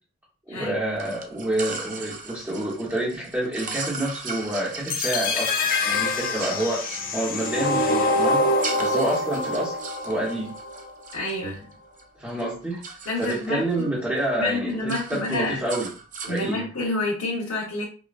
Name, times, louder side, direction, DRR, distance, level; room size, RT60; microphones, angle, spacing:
voice 1, 0.5-5.5 5.8-6.8 7.1-8.5 8.8-9.8 10.0-10.6 12.2-12.8 13.2-15.9 16.2-16.6, right 1 dB, 10° right, -7 dB, 1.1 m, -28 dB
sound 1, 1.0-12.0 12.3-13.9 14.2-14.4 14.7-16.5, right 4 dB, 40° right, 0.6 m, -38 dB
sound 2, 4.9-10.9, left 2 dB, 40° left, 0.5 m, -25 dB
voice 2, 11.1-11.7 13.0-13.9 14.4-15.6 16.3-17.8, left 2 dB, 85° left, -6 dB, 1.2 m, -28 dB
5.1 x 2.3 x 2.5 m, 0.38 s
head